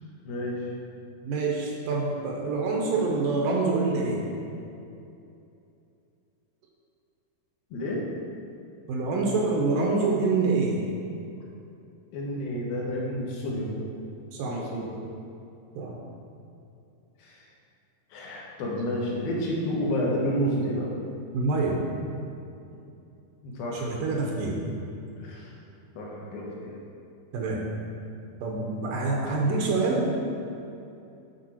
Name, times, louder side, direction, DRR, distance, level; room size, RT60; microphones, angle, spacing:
voice 1, 0.2-0.6 7.7-8.0 12.1-13.8 14.5-15.0 17.2-17.5 18.1-20.9 23.4-23.9 25.2-25.5 26.0-26.8, equal, 80° left, -4 dB, 2.9 m, -30 dB
voice 2, 1.2-4.3 8.9-10.8 14.3-14.6 15.8-16.0 21.3-21.8 23.7-24.7 27.3-27.6 28.4-30.3, right 3 dB, 75° right, -1 dB, 2.3 m, -26 dB
9.0 x 4.9 x 4.3 m, 2.7 s
omnidirectional pair, 4.3 m